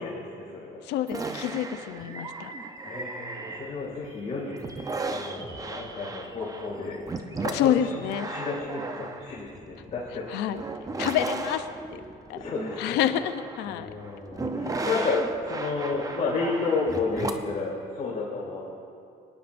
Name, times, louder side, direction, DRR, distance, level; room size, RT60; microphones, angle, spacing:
voice 1, 0.0-0.8 2.8-4.8 5.1-7.9 8.2-10.3 12.3-13.0 13.7-18.7, left 4 dB, 40° left, -7 dB, 2.4 m, -32 dB
voice 2, 0.9-2.5 7.5-8.3 10.3-10.6 11.0-12.0 12.3-12.4 12.8-13.9, left 10 dB, 90° left, 10 dB, 0.6 m, -28 dB
sound 1, 1.1-4.1 4.5-17.6, right 3 dB, 20° right, 0.7 m, -36 dB
23.5 x 9.9 x 2.6 m, 2.4 s
cardioid pair, 110°, 17 cm